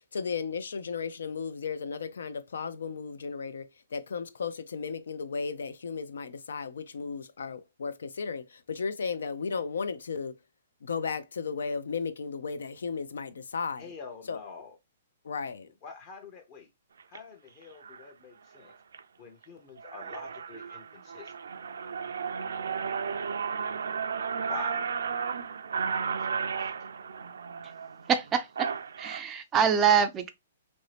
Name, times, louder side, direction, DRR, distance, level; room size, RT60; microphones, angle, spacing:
voice 1, 0.1-10.3 10.8-13.9 14.3-14.4 15.2-15.7, left 5 dB, 85° left, 0.5 m, -35 dB
voice 2, 13.8-14.8 15.8-16.7 17.1-18.8 19.2-21.3 24.5-24.9 26.2-26.3 26.6-26.7, left 5 dB, 30° left, 0.6 m, -46 dB
sound 1, 17.0-17.2 17.8-18.1 18.6-19.0 19.4-19.5 19.8-29.2, right 6 dB, 90° right, 0.4 m, -34 dB
voice 3, 28.1-28.7 29.0-30.3, right 7 dB, 15° right, 0.3 m, -25 dB
3.0 x 2.6 x 3.2 m
hypercardioid pair, 160°, 0 cm